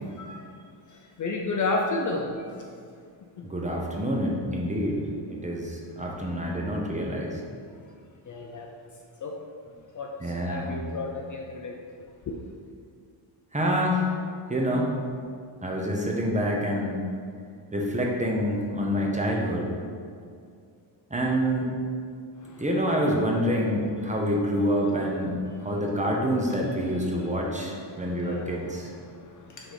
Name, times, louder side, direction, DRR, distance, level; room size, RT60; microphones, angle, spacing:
voice 1, 0.1-0.5 0.9-2.7 3.4-3.5 8.2-8.7 9.2-9.4 9.9-11.8 12.3-12.4 22.4-22.7 24.1-24.2 25.5-25.8 26.3-29.7, left 3 dB, 40° left, 1 dB, 0.5 m, -34 dB
voice 2, 3.4-5.0 5.4-7.4 10.2-10.8 13.5-14.1 14.5-14.9 15.6-17.0 17.7-19.7 21.1-21.7 22.6-25.4 25.6-28.9, equal, 15° right, -2 dB, 0.8 m, -27 dB
6.4 x 3.9 x 5.1 m, 2.3 s
wide cardioid pair, 150°, 48 cm